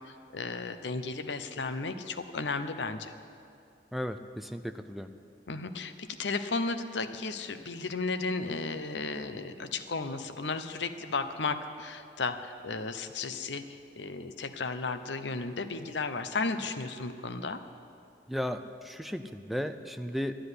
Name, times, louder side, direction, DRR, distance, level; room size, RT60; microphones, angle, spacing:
voice 1, 0.0-3.1 5.5-17.6, left 3 dB, 80° left, 10 dB, 0.8 m, -34 dB
voice 2, 3.9-5.1 18.3-20.4, equal, ahead, 8 dB, 0.5 m, -35 dB
12.5 x 10.0 x 9.7 m, 2.5 s
head